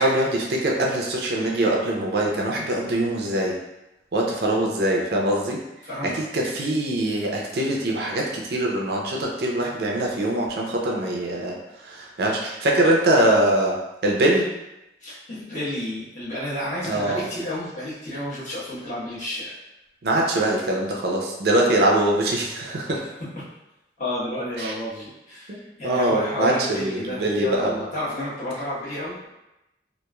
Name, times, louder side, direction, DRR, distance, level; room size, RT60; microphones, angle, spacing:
voice 1, 0.0-3.6 4.1-5.6 6.0-11.6 11.8-13.8 14.0-14.5 16.9-17.2 20.0-23.0 24.6-24.7 25.5-25.6 25.8-27.8, right 1 dB, 60° right, -1 dB, 0.4 m, -23 dB
voice 2, 5.8-6.2 15.0-19.5 23.3-23.4 24.0-29.2, left 1 dB, 40° left, -10 dB, 1.1 m, -31 dB
2.9 x 2.4 x 2.3 m, 0.93 s
head